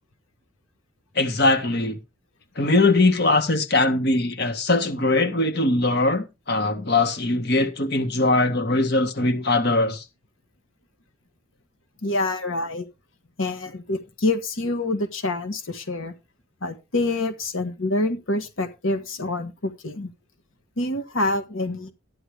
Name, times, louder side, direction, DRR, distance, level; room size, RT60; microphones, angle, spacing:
voice 1, 1.2-2.0 2.6-10.0, left 2 dB, 50° left, 1.8 m, -21 dB
voice 2, 12.0-12.8 13.4-16.1 16.6-20.1 20.8-21.9, left 2 dB, 75° left, 1.5 m, -26 dB
13.0 x 10.0 x 3.4 m
head